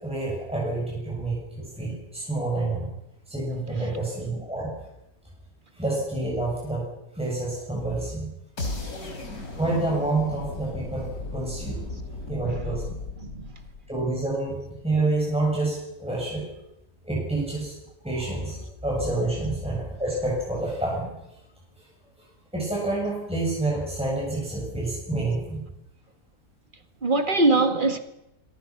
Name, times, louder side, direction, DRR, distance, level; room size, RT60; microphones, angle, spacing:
voice 1, 0.0-2.8 3.3-4.7 5.8-6.8 7.2-8.3 9.6-11.8 12.3-13.0 13.9-16.5 17.0-17.7 18.0-21.1 22.5-25.6, right 2 dB, 5° right, 7.2 m, -28 dB
voice 2, 3.6-4.0 8.6-8.9 11.9-12.0 12.5-12.7 13.2-13.5 19.3-19.4 27.0-28.0, right 2 dB, 30° right, 2.0 m, -24 dB
sound 1, 8.6-14.5, left 2 dB, 60° left, 4.2 m, -36 dB
27.5 x 24.0 x 6.1 m
omnidirectional pair, 1.8 m